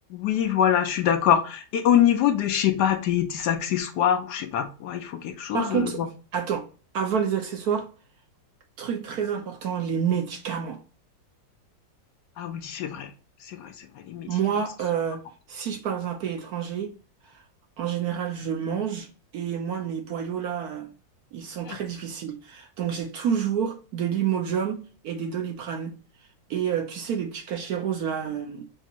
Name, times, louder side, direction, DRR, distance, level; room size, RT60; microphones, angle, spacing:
voice 1, 0.1-6.1 12.4-13.1 13.5-13.7 14.1-14.3 21.7-21.8, left 10 dB, 70° left, 1.1 m, -24 dB
voice 2, 5.5-6.7 6.9-7.9 8.8-10.8 14.3-15.2 15.5-16.9 17.3-17.4 17.8-19.1 19.3-20.9 21.3-26.0 26.5-28.6, right 8 dB, 65° right, 1.0 m, -28 dB
5.4 x 2.5 x 2.8 m
omnidirectional pair, 2.0 m